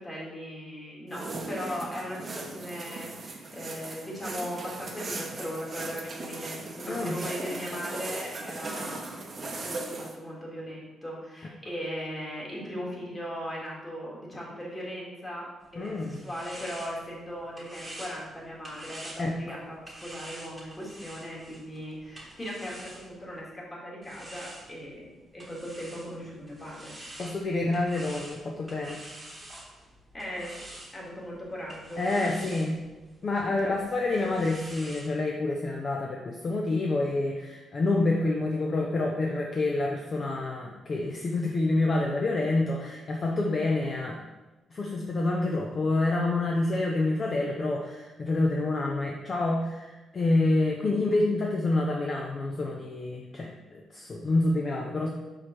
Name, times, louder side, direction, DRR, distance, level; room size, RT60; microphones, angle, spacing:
voice 1, 0.0-27.0 30.1-30.6 30.9-32.7 33.5-33.8, equal, 20° left, -4 dB, 2.3 m, -38 dB
sound 1, 1.1-10.2, right 3 dB, 35° right, 0.8 m, -38 dB
voice 2, 6.9-7.2 15.8-16.2 19.2-19.3 27.2-29.0 32.0-32.8 33.2-44.2 44.7-55.1, left 2 dB, 40° left, 0 dB, 0.7 m, -27 dB
sound 2, 15.6-23.4 24.0-35.1, right 1 dB, 10° right, 1.4 m, -47 dB
4.9 x 4.2 x 6.0 m, 1.1 s
cardioid pair, 120°, 0 cm